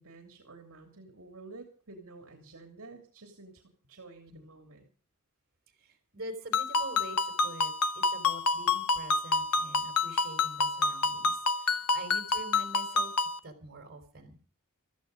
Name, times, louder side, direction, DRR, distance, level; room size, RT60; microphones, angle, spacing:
voice 1, 0.0-4.9, right 3 dB, 65° right, 4 dB, 2.9 m, -50 dB
voice 2, 5.8-13.1 13.4-14.4, right 2 dB, 45° right, 6 dB, 4.6 m, -45 dB
Ringtone, 6.5-13.4, left 3 dB, 75° left, 1.2 m, -28 dB
15.5 x 14.5 x 5.2 m, 0.39 s
head